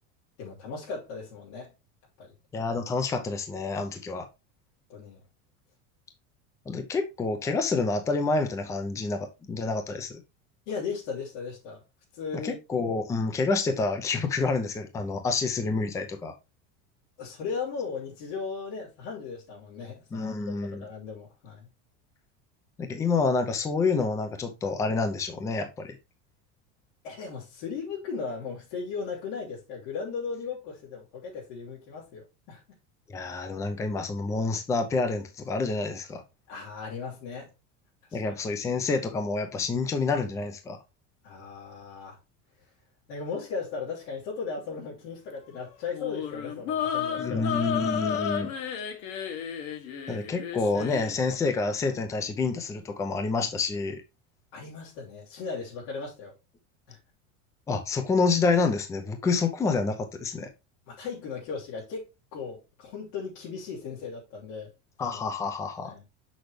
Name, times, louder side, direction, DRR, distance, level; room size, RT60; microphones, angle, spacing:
voice 1, 0.4-1.7 2.2-2.3 4.9-5.2 10.7-11.8 12.1-12.5 17.2-21.7 27.0-32.8 36.5-37.5 38.1-38.2 41.2-42.2 43.1-48.6 54.5-56.3 56.9-57.0 60.9-64.7 65.1-65.2 65.8-66.0, left 5 dB, 80° left, 3.3 m, -37 dB
voice 2, 2.5-4.3 6.7-10.2 12.4-16.3 20.1-20.8 22.8-26.0 33.1-36.2 38.1-40.8 47.2-48.5 50.1-54.0 57.7-60.5 65.0-65.9, left 4 dB, 10° left, 0.5 m, -28 dB
sound 1, 45.9-51.2, left 8 dB, 50° left, 1.5 m, -32 dB
6.5 x 6.2 x 3.2 m
cardioid pair, 180°, 35 cm